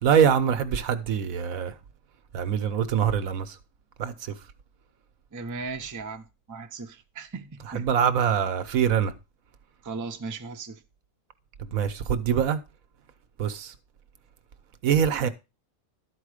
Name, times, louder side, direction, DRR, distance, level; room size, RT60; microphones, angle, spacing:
voice 1, 0.0-1.7 2.3-3.6 4.0-4.3 7.7-9.1 11.6-12.6 13.4-13.7 14.8-15.3, right 8 dB, 75° right, 1.2 m, -24 dB
voice 2, 5.3-7.9 9.8-10.8, right 4 dB, 20° right, 0.5 m, -37 dB
12.0 x 4.5 x 4.9 m
omnidirectional pair, 1.5 m